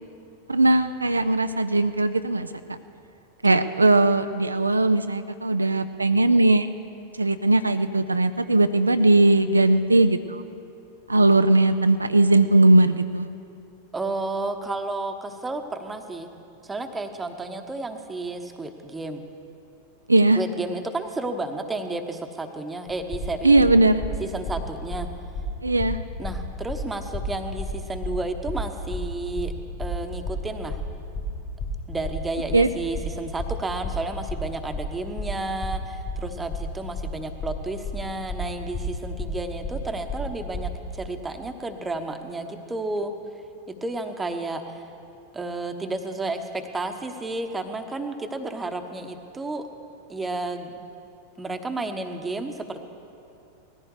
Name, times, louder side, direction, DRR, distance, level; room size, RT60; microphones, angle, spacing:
voice 1, 0.5-2.8 3.4-6.7 7.2-10.4 11.1-13.3 20.1-20.4 23.4-24.0 25.6-26.0 32.5-32.7, right 2 dB, 80° right, 10 dB, 0.4 m, -19 dB
voice 2, 13.9-16.3 16.6-19.2 20.3-23.7 24.2-25.1 26.2-29.5 29.8-30.8 31.9-43.1 43.7-44.8 45.3-49.6 50.1-50.8 51.4-52.8, right 2 dB, 10° right, 6 dB, 1.1 m, -32 dB
sound 1, 22.9-40.8, left 3 dB, 35° left, 2.7 m, -33 dB
18.5 x 14.5 x 4.8 m, 2.6 s
figure-of-eight pair, 90°, 0 cm